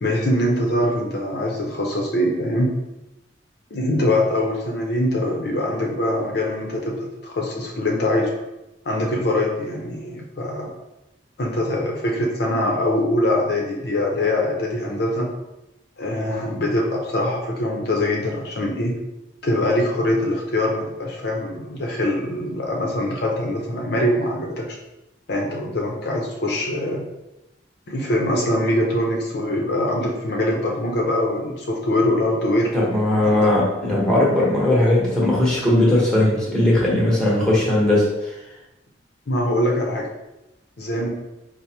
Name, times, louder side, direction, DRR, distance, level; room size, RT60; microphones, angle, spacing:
voice 1, 0.0-2.7 3.7-8.3 8.9-10.7 11.4-15.3 16.0-18.9 19.4-24.8 25.3-27.0 27.9-32.7 33.2-33.3 39.3-40.1 40.8-41.1, left 1 dB, 60° left, 0 dB, 0.6 m, -23 dB
voice 2, 32.7-38.3, left 1 dB, 5° left, -7 dB, 0.9 m, -18 dB
4.6 x 2.0 x 2.8 m, 0.95 s
head